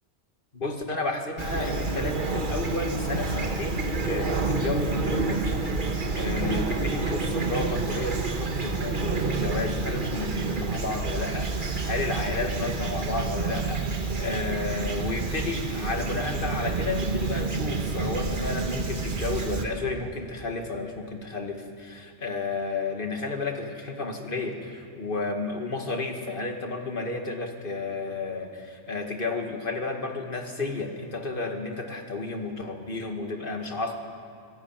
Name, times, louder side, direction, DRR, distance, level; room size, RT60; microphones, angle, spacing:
voice 1, 0.5-5.5 5.8-33.9, left 3 dB, 50° left, 3 dB, 2.3 m, -32 dB
Fowl / Chirp tweet, 1.4-19.7, right 3 dB, 50° right, 1.5 m, -29 dB
24.0 x 17.0 x 9.0 m, 2.4 s
omnidirectional pair, 1.2 m